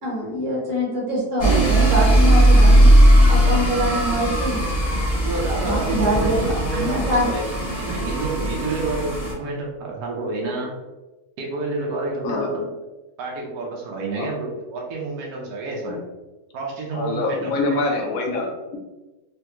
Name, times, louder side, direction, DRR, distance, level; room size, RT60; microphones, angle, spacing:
voice 1, 0.0-2.9 3.3-4.6 5.6-6.4 6.7-7.3, equal, 40° right, -5 dB, 1.3 m, -24 dB
sound 1, 1.4-9.3, right 1 dB, 30° left, 0.8 m, -17 dB
voice 2, 5.2-10.7 11.4-12.7 13.2-16.0 16.5-17.8, right 3 dB, 75° right, -2 dB, 1.1 m, -29 dB
voice 3, 16.9-18.8, left 2 dB, 70° left, 1 dB, 1.0 m, -25 dB
3.3 x 2.3 x 2.9 m, 1.1 s
omnidirectional pair, 1.7 m